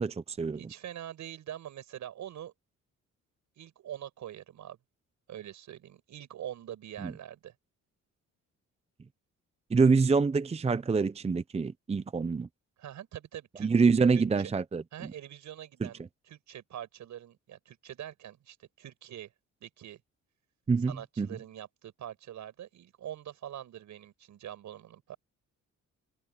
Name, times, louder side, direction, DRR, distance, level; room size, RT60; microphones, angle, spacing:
voice 1, 0.0-0.6 7.0-7.1 9.7-12.5 13.6-15.1 15.8-15.9 20.7-21.3, right 4 dB, 20° right, 0.7 m, -26 dB
voice 2, 0.6-2.5 3.6-4.8 5.3-7.5 12.8-13.7 14.1-14.5 14.9-19.3 19.6-20.0 20.8-25.2, right 11 dB, 70° right, 6.6 m, -44 dB
cardioid pair, 90°, 30 cm